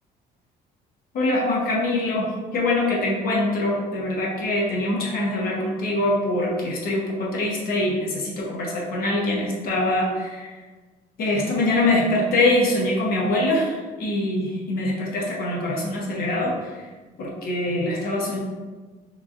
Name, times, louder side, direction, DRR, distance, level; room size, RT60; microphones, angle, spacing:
voice 1, 1.1-10.5 11.2-16.7 17.2-18.4, left 1 dB, 60° left, -3 dB, 0.9 m, -24 dB
3.7 x 3.2 x 2.5 m, 1.3 s
cardioid pair, 110°, 17 cm